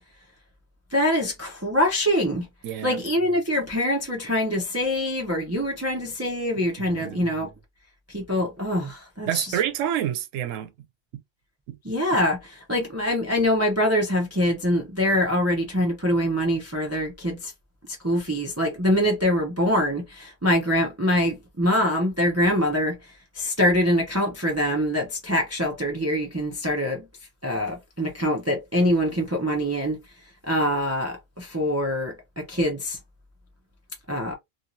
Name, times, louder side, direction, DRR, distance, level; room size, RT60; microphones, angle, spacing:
voice 1, 0.9-2.5 2.8-7.5 8.1-9.6 11.8-17.5 17.9-23.0 23.3-27.1 27.4-30.0 30.5-33.0 34.1-34.3, equal, 20° right, 0.4 m, -24 dB
voice 2, 2.6-3.0 7.0-7.2 9.3-10.7 11.7-11.8, right 10 dB, 70° right, 0.9 m, -27 dB
2.8 x 2.7 x 2.6 m
omnidirectional pair, 1.4 m